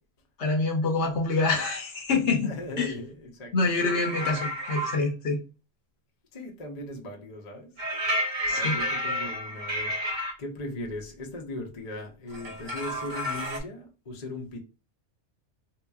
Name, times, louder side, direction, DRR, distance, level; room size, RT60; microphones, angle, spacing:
voice 1, 0.4-2.5 2.8-2.9 3.5-5.4 8.5-8.7, left 3 dB, 65° left, 1.2 m, -26 dB
voice 2, 2.4-4.2 6.3-7.8 8.5-14.6, left 1 dB, 40° left, 0.8 m, -39 dB
sound 1, 3.8-5.0 7.8-10.3 12.3-13.6, equal, 40° right, 1.0 m, -30 dB
3.8 x 2.9 x 2.3 m
omnidirectional pair, 1.3 m